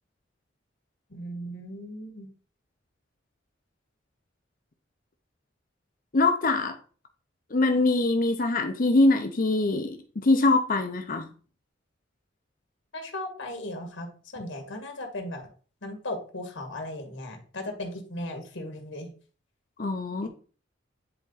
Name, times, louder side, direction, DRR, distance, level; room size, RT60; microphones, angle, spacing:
voice 1, 1.1-2.3 12.9-14.1 14.3-15.5 15.8-19.1 20.2-20.3, left 1 dB, 75° left, 4 dB, 2.0 m, -37 dB
voice 2, 6.1-6.8 7.5-11.3 19.8-20.3, left 2 dB, 45° left, 7 dB, 0.7 m, -23 dB
9.9 x 3.9 x 4.0 m, 0.40 s
head